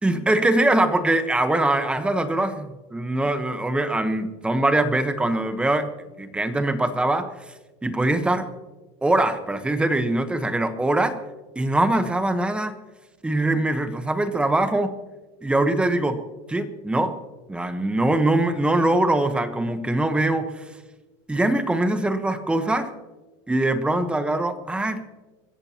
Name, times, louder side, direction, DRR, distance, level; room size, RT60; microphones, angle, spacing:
voice 1, 0.0-5.9 6.2-7.3 7.8-8.5 9.0-11.2 11.5-12.7 13.2-15.0 15.4-16.2 16.5-17.1 17.5-20.6 21.3-22.9 23.5-25.0, right 2 dB, 10° right, 9 dB, 1.1 m, -22 dB
28.0 x 14.5 x 3.0 m, 1.2 s
supercardioid pair, 135°, 14 cm